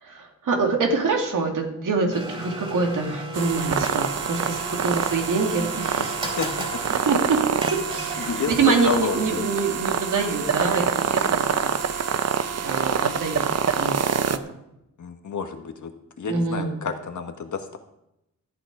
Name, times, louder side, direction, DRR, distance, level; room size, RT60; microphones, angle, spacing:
voice 1, 0.0-6.3 6.9-7.4 7.9-12.1 12.6-13.4 13.8-14.4 16.2-16.8, right 4 dB, 70° right, 2 dB, 2.5 m, -25 dB
Domestic sounds home sounds, 2.1-8.6, right 1 dB, 15° right, 3.3 m, -36 dB
sound 1, 3.3-14.4, right 7 dB, 50° right, 0.7 m, -26 dB
voice 2, 6.0-6.8 8.2-9.4 15.0-17.8, left 5 dB, 60° left, 6 dB, 1.5 m, -30 dB
13.5 x 9.0 x 4.9 m, 0.84 s
wide cardioid pair, 125°, 33 cm